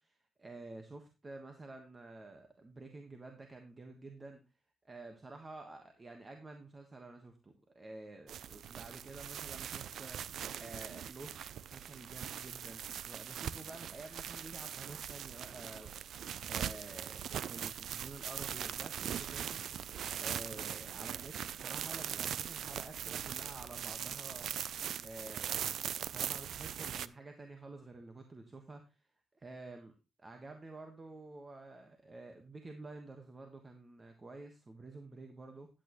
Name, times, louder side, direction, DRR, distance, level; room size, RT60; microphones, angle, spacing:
voice 1, 0.0-4.4 4.8-16.2 16.5-19.6 20.2-24.5 25.0-29.1 29.3-29.9 30.2-35.7, right 2 dB, 30° right, 5 dB, 1.4 m, -50 dB
sound 1, 8.3-27.1, right 9 dB, 75° right, 0.4 m, -41 dB
10.5 x 8.8 x 3.1 m, 0.28 s
cardioid pair, 85°, 0 cm